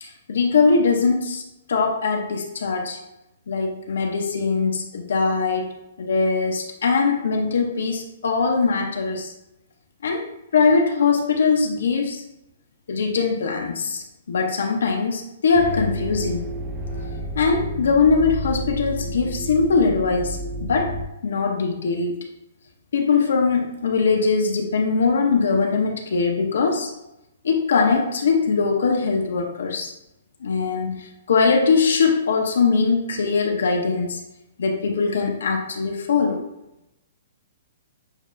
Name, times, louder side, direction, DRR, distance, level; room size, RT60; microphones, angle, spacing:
voice 1, 0.0-1.4 1.7-3.0 3.5-9.3 10.0-12.2 12.9-16.6 17.0-21.0 21.2-22.3 22.9-26.9 27.4-29.9 30.4-34.2 34.6-36.4, left 4 dB, 70° left, 3 dB, 0.6 m, -21 dB
sound 1, 15.5-21.1, right 1 dB, 10° right, 0.3 m, -31 dB
7.0 x 2.4 x 2.5 m, 0.89 s
hypercardioid pair, 175°, 0 cm